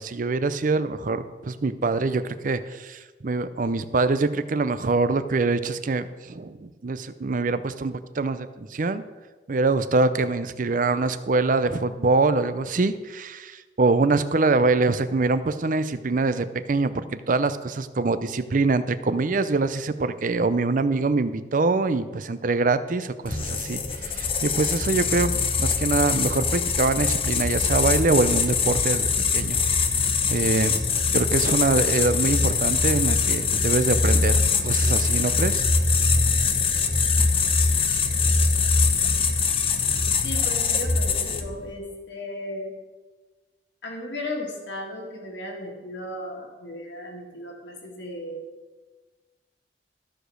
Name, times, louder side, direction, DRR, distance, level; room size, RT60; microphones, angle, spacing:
voice 1, 0.0-9.0 9.5-29.1 29.3-29.6 30.3-35.6, right 3 dB, 50° right, 12 dB, 0.5 m, -24 dB
sound 1, 23.3-41.6, left 4 dB, 30° left, 0.8 m, -23 dB
voice 2, 40.2-42.7 43.8-48.4, left 1 dB, 90° left, 1 dB, 1.9 m, -35 dB
13.5 x 5.0 x 6.3 m, 1.3 s
head